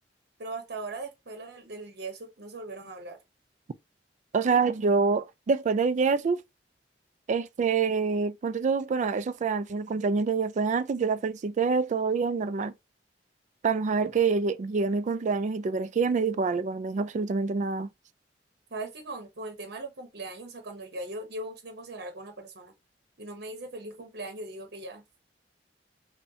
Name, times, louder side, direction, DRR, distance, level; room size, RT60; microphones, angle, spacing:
voice 1, 0.4-3.2 18.7-22.7 23.2-25.0, right 2 dB, 60° right, 0.9 m, -39 dB
voice 2, 4.3-6.4 7.3-12.7 13.6-17.9, right 4 dB, 40° right, 0.3 m, -26 dB
5.4 x 2.2 x 2.7 m
head